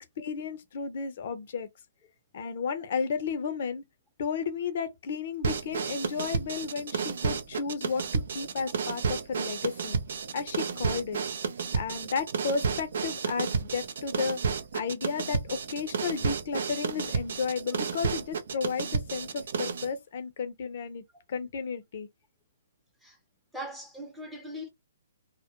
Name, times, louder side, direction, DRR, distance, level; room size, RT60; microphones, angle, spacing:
voice 1, 0.2-1.7 2.3-3.8 4.2-10.0 10.3-11.2 11.7-14.4 14.7-21.0 21.3-22.1, left 5 dB, 55° left, 0.5 m, -33 dB
sound 1, 5.4-19.9, right 5 dB, 65° right, 0.5 m, -32 dB
voice 2, 23.5-24.7, equal, ahead, 0.7 m, -40 dB
2.1 x 2.1 x 2.8 m
hypercardioid pair, 155°, 0 cm